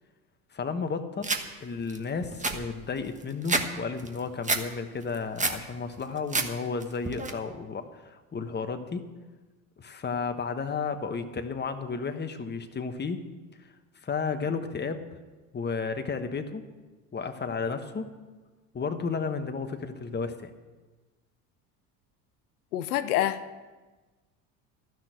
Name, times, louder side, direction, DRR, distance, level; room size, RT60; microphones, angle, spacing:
voice 1, 0.5-1.3 1.6-9.0 9.8-13.2 14.0-15.0 15.5-16.7 17.1-18.1 18.7-20.5, left 5 dB, 25° left, 7 dB, 1.3 m, -33 dB
sound 1, 1.2-1.4 1.9-2.0 2.2-3.7 4.0-4.6 5.0-5.6 6.0-6.5 6.8-7.3, right 3 dB, 15° right, 1.3 m, -28 dB
voice 2, 22.7-23.6, left 12 dB, 90° left, 11 dB, 0.7 m, -27 dB
12.5 x 6.2 x 9.2 m, 1.3 s
hypercardioid pair, 80°, 44 cm